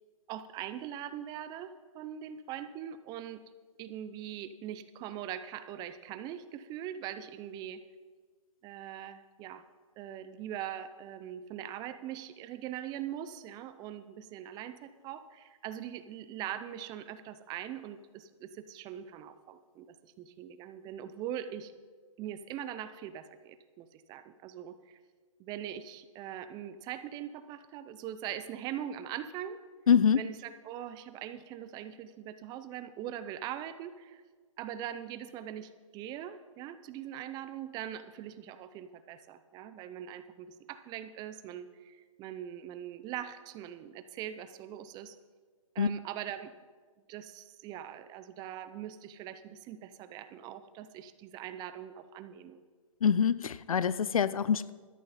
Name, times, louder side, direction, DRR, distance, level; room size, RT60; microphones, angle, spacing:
voice 1, 0.3-3.4 3.8-7.8 8.6-9.6 10.0-21.7 22.2-25.0 25.4-29.6 30.1-34.2 34.6-45.2 45.7-46.5 47.1-52.6, right 10 dB, 25° right, 12 dB, 0.6 m, -42 dB
voice 2, 29.9-30.2 45.8-45.9 53.0-54.7, left 7 dB, 85° left, 17 dB, 0.5 m, -25 dB
12.5 x 11.0 x 4.2 m, 1.5 s
hypercardioid pair, 135°, 17 cm